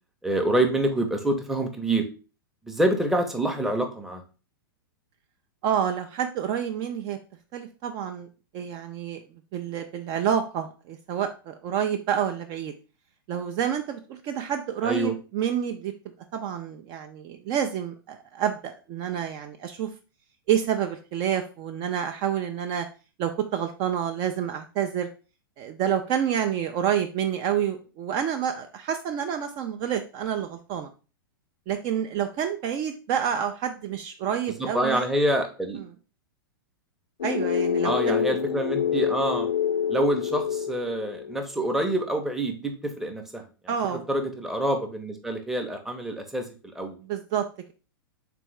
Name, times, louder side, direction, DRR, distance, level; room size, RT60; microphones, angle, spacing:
voice 1, 0.2-2.0 2.7-4.2 14.8-15.1 34.6-35.8 37.8-39.5 39.9-43.7 44.1-47.0, right 1 dB, 5° right, 3 dB, 0.7 m, -26 dB
voice 2, 5.6-7.2 7.5-8.3 8.5-9.2 9.5-12.7 13.3-15.9 16.3-19.9 20.5-22.9 23.2-25.1 25.6-30.9 31.7-35.1 37.2-38.3 43.7-44.0 47.0-47.7, right 9 dB, 35° right, 6 dB, 0.4 m, -28 dB
sound 1, 37.2-41.4, left 8 dB, 80° left, 0.4 m, -27 dB
3.5 x 3.4 x 3.1 m, 0.35 s
hypercardioid pair, 110°, 12 cm